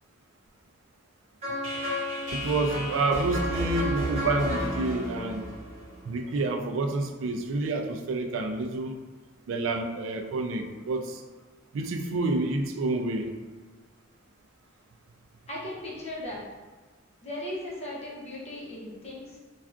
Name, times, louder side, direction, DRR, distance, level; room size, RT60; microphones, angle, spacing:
sound 1, 1.4-6.4, equal, 35° right, 1.1 m, -32 dB
voice 1, 2.3-5.5 6.0-9.0 9.5-11.2 11.7-13.4, right 2 dB, 85° right, 4 dB, 0.3 m, -28 dB
voice 2, 15.5-16.4 17.2-19.4, left 1 dB, 35° left, -6 dB, 0.8 m, -37 dB
3.4 x 2.4 x 2.4 m, 1.3 s
head